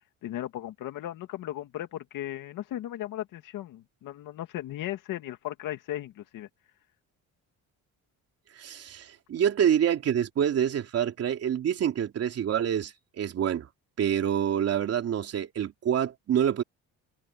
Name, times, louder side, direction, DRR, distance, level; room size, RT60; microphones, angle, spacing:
voice 1, 0.2-6.5, left 13 dB, 70° left, 2.2 m, -36 dB
voice 2, 8.6-13.7 14.0-16.6, right 9 dB, 45° right, 3.4 m, -27 dB
cardioid pair, 165°, 33 cm